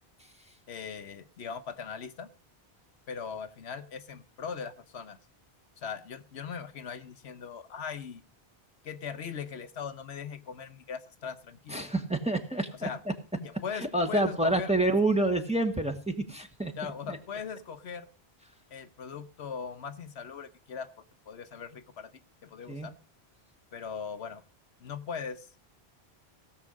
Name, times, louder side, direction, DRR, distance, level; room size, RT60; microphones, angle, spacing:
voice 1, 0.7-2.3 3.1-5.2 5.8-8.2 8.8-11.9 12.8-13.0 13.4-14.8 16.8-18.1 18.7-20.9 21.3-22.1 22.4-22.9 23.7-24.4 24.8-25.5, left 6 dB, 80° left, 9 dB, 1.2 m, -39 dB
voice 2, 11.7-12.9 13.7-16.7 17.1-17.2 22.7-22.9, right 2 dB, 5° right, 4 dB, 1.3 m, -28 dB
17.0 x 6.8 x 6.3 m, 0.38 s
omnidirectional pair, 1.1 m